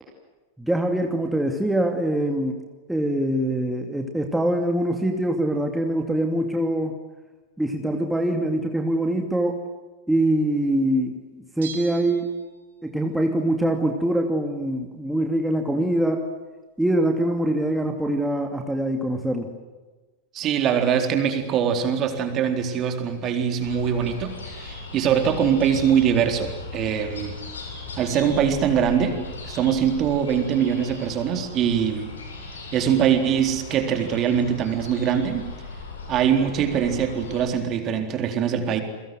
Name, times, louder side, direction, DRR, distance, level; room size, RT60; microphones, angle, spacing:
voice 1, 0.6-2.6 2.9-6.9 7.6-9.6 10.1-12.3 12.8-16.3 16.8-19.5, right 1 dB, 5° right, 3 dB, 2.6 m, -24 dB
Bell, 11.6-13.0 13.3-13.4, right 7 dB, 60° right, 4.7 m, -42 dB
voice 2, 20.3-27.4 28.0-29.2 29.5-32.1 32.7-35.5 36.1-38.8, right 8 dB, 35° right, 6 dB, 4.0 m, -23 dB
sound 1, 23.6-37.5, left 3 dB, 70° left, 7.6 m, -38 dB
30.0 x 23.5 x 7.9 m, 1.2 s
figure-of-eight pair, 90°, 0 cm